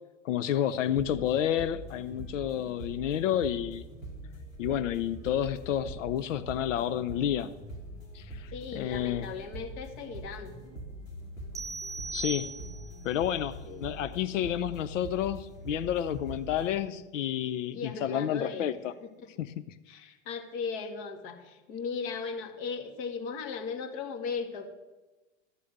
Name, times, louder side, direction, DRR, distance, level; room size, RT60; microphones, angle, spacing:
voice 1, 0.2-3.8 4.6-7.5 8.1-9.3 12.1-12.5 13.0-18.9 19.4-19.6, left 10 dB, 75° left, 13 dB, 0.6 m, -30 dB
sound 1, 0.7-16.8, right 1 dB, 90° left, 3.6 m, -44 dB
voice 2, 8.5-10.5 13.6-13.9 16.8-17.0 17.7-18.7 19.9-24.7, left 5 dB, 55° left, 4 dB, 2.2 m, -37 dB
sound 2, 11.5-13.1, right 3 dB, 10° right, 0.4 m, -38 dB
13.0 x 4.9 x 7.9 m, 1.1 s
hypercardioid pair, 100°, 38 cm